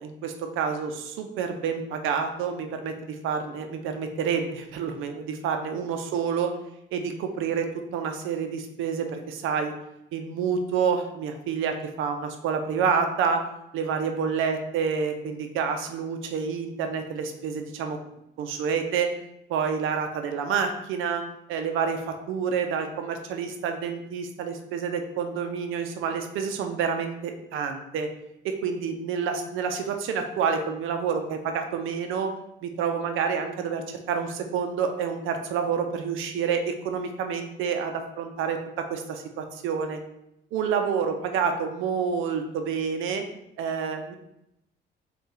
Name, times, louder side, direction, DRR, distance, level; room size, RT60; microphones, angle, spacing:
voice 1, 0.0-6.5 6.9-9.7 10.1-13.4 13.7-18.0 18.4-19.1 19.5-21.2 21.5-28.1 28.4-32.3 32.6-40.0 40.5-43.2 43.6-44.1, right 6 dB, 85° right, 6 dB, 0.5 m, -28 dB
4.1 x 2.3 x 3.7 m, 0.82 s
cardioid pair, 90°, 20 cm